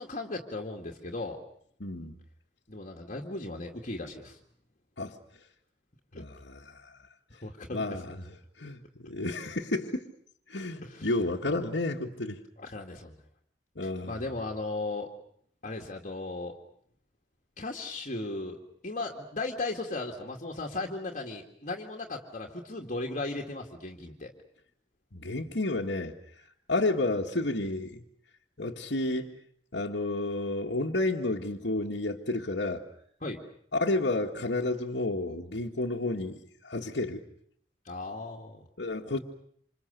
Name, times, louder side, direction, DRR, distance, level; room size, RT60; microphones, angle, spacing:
voice 1, 0.0-1.4 2.7-4.4 6.1-6.2 7.4-8.2 10.8-11.1 12.6-13.2 13.8-15.1 15.6-16.6 17.6-24.3 33.2-33.4 37.8-38.7, left 2 dB, 45° left, 1 dB, 2.2 m, -36 dB
voice 2, 1.8-2.2 5.0-5.2 6.1-7.0 7.7-8.3 8.6-10.1 10.5-12.4 13.8-14.2 25.1-28.0 28.6-29.4 29.7-32.8 33.7-36.4 36.6-37.2 38.8-39.2, left 2 dB, 70° left, -3 dB, 1.9 m, -31 dB
27.5 x 27.0 x 6.8 m, 0.64 s
head